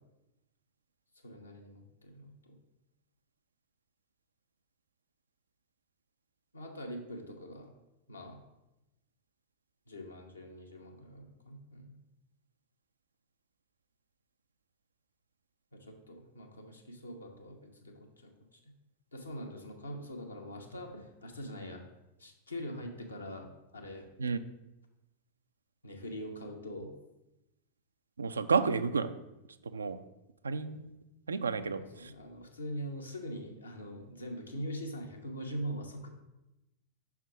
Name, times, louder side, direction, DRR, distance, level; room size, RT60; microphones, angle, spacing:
voice 1, 1.2-2.6 6.5-7.7 8.1-8.4 9.9-12.0 15.7-18.7 19.1-21.8 22.2-24.1 25.8-26.9 31.5-36.1, equal, 80° left, 1 dB, 1.0 m, -43 dB
voice 2, 28.2-29.2 29.7-30.0 30.4-30.9 31.3-32.1, right 5 dB, 75° right, 12 dB, 0.3 m, -31 dB
5.7 x 3.5 x 5.9 m, 0.95 s
figure-of-eight pair, 90°, 0 cm